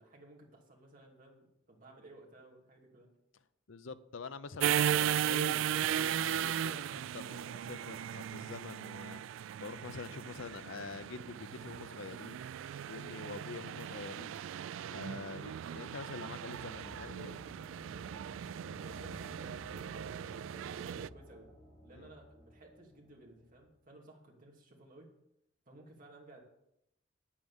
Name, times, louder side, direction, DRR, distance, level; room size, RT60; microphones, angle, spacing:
voice 1, 0.0-3.1 18.8-21.5 21.8-25.1 25.7-26.4, right 2 dB, 45° right, 0 dB, 2.8 m, -56 dB
voice 2, 3.7-9.2 9.6-12.5 12.9-14.4 14.9-17.4 21.9-22.0, left 4 dB, 85° left, 14 dB, 0.7 m, -46 dB
sound 1, 4.6-21.1, right 10 dB, 85° right, 0.3 m, -37 dB
sound 2, 16.5-23.7, left 1 dB, 15° left, 5.1 m, -55 dB
9.3 x 8.5 x 7.2 m, 0.81 s
head